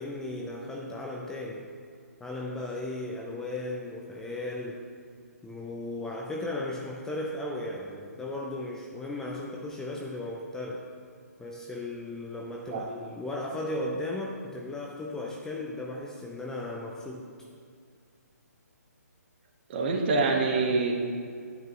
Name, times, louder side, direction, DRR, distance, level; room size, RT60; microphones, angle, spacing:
voice 1, 0.0-1.7 2.2-4.8 5.4-10.9 11.4-17.3, left 2 dB, 5° left, -1 dB, 0.5 m, -36 dB
voice 2, 19.7-20.9, right 3 dB, 40° right, 1 dB, 1.3 m, -25 dB
10.5 x 9.0 x 3.0 m, 2.2 s
figure-of-eight pair, 140°, 9 cm